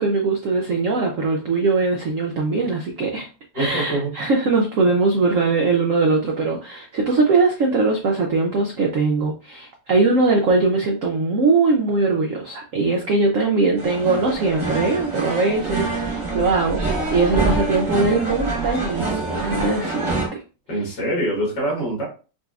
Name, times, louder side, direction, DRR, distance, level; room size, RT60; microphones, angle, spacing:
voice 1, 0.0-3.3 3.5-20.4, right 3 dB, 70° right, 1 dB, 0.7 m, -21 dB
voice 2, 3.5-4.1 20.7-22.0, right 1 dB, 65° left, -3 dB, 2.4 m, -24 dB
sound 1, 13.8-20.3, right 3 dB, 20° right, 0.9 m, -25 dB
5.1 x 2.7 x 2.4 m, 0.34 s
omnidirectional pair, 2.0 m